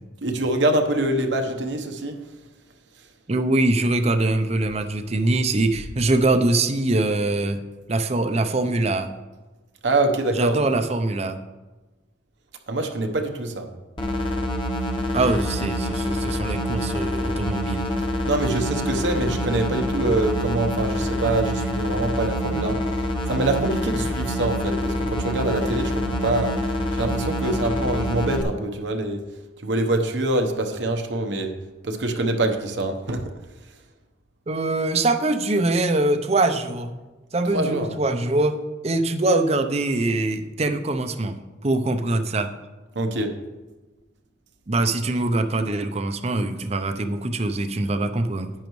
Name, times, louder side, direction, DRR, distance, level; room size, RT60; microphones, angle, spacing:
voice 1, 0.2-2.2 9.8-10.6 12.7-13.7 18.3-26.6 26.9-29.2 29.6-33.3 37.5-37.9 42.9-43.4, right 2 dB, 70° right, 5 dB, 0.9 m, -25 dB
voice 2, 3.3-7.6 7.9-9.1 10.4-11.4 15.1-17.9 22.5-22.6 34.5-37.0 37.3-41.4 41.6-42.5 44.7-48.5, right 2 dB, 35° right, 8 dB, 0.6 m, -23 dB
sound 1, 14.0-28.4, left 1 dB, 25° left, 1.0 m, -26 dB
10.5 x 9.3 x 3.1 m, 1.2 s
head